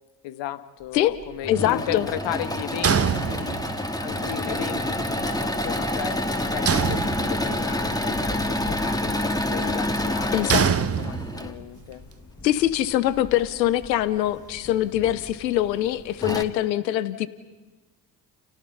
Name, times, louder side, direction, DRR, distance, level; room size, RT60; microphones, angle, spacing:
voice 1, 0.2-3.6 4.0-12.0, left 11 dB, 60° left, 12 dB, 1.7 m, -35 dB
Engine / Mechanisms, 1.2-11.5 13.1-13.9 14.5-14.6 14.9-15.0 15.8-15.9 16.2-16.4, left 1 dB, 10° left, 2.4 m, -28 dB
voice 2, 1.5-2.1 10.3-10.7 12.4-17.3, left 13 dB, 90° left, 16 dB, 1.0 m, -23 dB
sound 1, 2.8-3.9 6.7-7.7 10.5-11.6, right 7 dB, 30° right, 1.3 m, -24 dB
sound 2, 5.0-16.3, left 3 dB, 35° left, 6.0 m, -44 dB
30.0 x 30.0 x 5.6 m, 1.2 s
hypercardioid pair, 55°, 49 cm